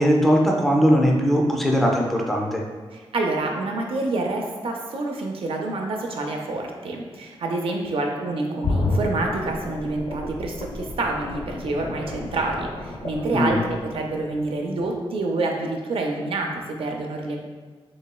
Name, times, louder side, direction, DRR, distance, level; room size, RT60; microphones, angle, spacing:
voice 1, 0.0-2.6 13.3-13.6, equal, ahead, 0 dB, 0.4 m, -19 dB
voice 2, 2.9-17.4, right 2 dB, 65° right, 1 dB, 0.5 m, -27 dB
sound 1, 8.6-14.4 14.8-14.9, left 2 dB, 60° left, 0.6 m, -30 dB
4.0 x 3.0 x 2.2 m, 1.5 s
wide cardioid pair, 130°, 10 cm